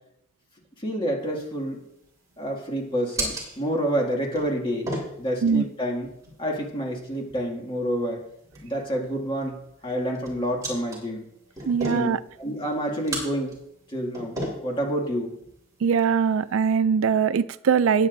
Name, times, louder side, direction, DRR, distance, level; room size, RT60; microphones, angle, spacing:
voice 1, 0.8-1.8 2.4-4.9 5.2-6.1 6.4-8.2 8.6-9.6 9.8-11.2 11.8-12.1 12.4-13.6 13.9-15.3, equal, 25° left, -1 dB, 2.2 m, -28 dB
sound 1, 1.2-16.5, right 1 dB, 15° right, 3.8 m, -38 dB
voice 2, 11.7-12.2 15.8-18.1, right 6 dB, 80° right, 15 dB, 0.4 m, -21 dB
18.5 x 9.2 x 2.7 m, 0.78 s
head